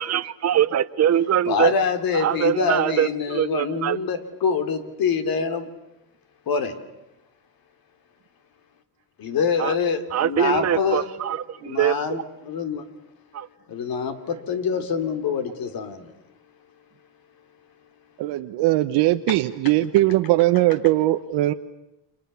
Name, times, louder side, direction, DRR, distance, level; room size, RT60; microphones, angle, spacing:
voice 1, 0.0-1.7 2.1-4.0 9.6-9.8 10.1-12.2 13.3-13.5, right 10 dB, 40° right, 1.0 m, -23 dB
voice 2, 1.5-5.7 6.5-6.7 9.2-11.0 11.6-12.8 13.7-16.1 19.3-19.4, left 6 dB, 60° left, 3.6 m, -25 dB
voice 3, 18.2-21.5, right 16 dB, 85° right, 1.1 m, -20 dB
29.5 x 27.5 x 7.1 m
cardioid pair, 115°, 40 cm